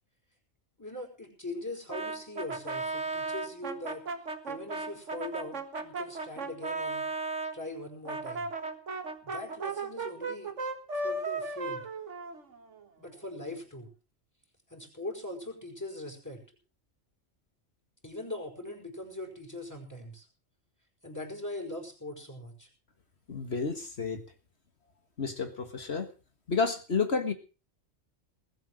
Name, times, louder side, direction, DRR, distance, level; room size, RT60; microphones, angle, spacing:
voice 1, 0.8-4.0 4.5-7.1 7.5-8.5 9.2-10.5 11.0-11.9 13.0-13.9 14.7-16.4 18.0-20.3 21.0-22.7, left 1 dB, 15° left, 3 dB, 5.3 m, -41 dB
Brass instrument, 1.9-7.5 8.1-12.8, right 3 dB, 65° right, 2.1 m, -35 dB
voice 2, 23.3-24.2 25.2-26.1 26.5-27.3, left 4 dB, 55° left, 7 dB, 1.8 m, -30 dB
20.5 x 8.2 x 6.3 m, 0.35 s
omnidirectional pair, 1.3 m